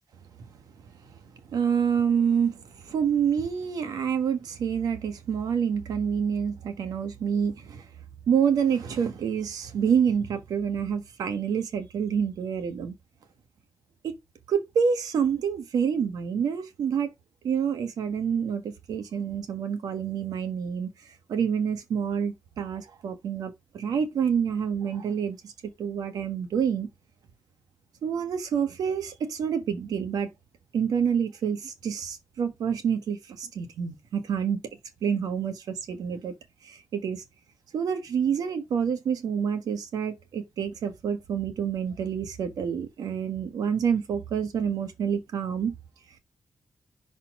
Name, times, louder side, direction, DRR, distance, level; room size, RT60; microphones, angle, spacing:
voice 1, 1.5-7.8 8.3-12.9 14.0-14.2 14.5-17.1 17.4-20.9 21.3-25.5 25.8-26.9 28.0-30.3 30.7-34.6 35.0-36.3 36.6-37.2 37.7-45.7, right 7 dB, 90° right, 1.3 m, -27 dB
6.1 x 4.1 x 5.2 m
cardioid pair, 80°, 6 cm